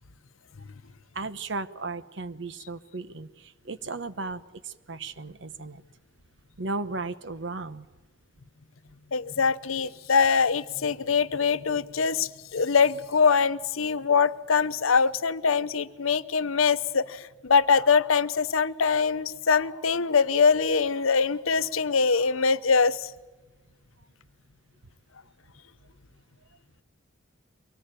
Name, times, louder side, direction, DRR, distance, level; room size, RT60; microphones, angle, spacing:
voice 1, 1.1-5.8 6.6-7.9, right 3 dB, 60° right, 13 dB, 1.0 m, -35 dB
voice 2, 9.1-23.1, left 5 dB, 90° left, 14 dB, 0.8 m, -23 dB
24.0 x 18.5 x 9.1 m, 1.2 s
head